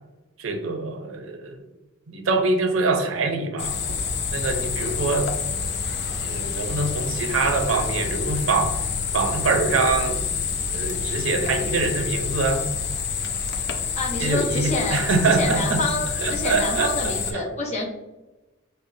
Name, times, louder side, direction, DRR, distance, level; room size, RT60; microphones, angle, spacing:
voice 1, 0.4-1.7 2.1-4.0 4.3-5.3 6.2-8.8 9.1-10.4 10.7-12.7 14.2-15.8 16.2-17.4 17.8-17.9, right 3 dB, 80° right, 5 dB, 0.5 m, -24 dB
sound 1, 3.6-17.3, left 5 dB, 60° left, 0.5 m, -28 dB
voice 2, 13.9-17.8, left 2 dB, 35° left, -3 dB, 0.9 m, -28 dB
5.2 x 2.1 x 2.6 m, 1.1 s
head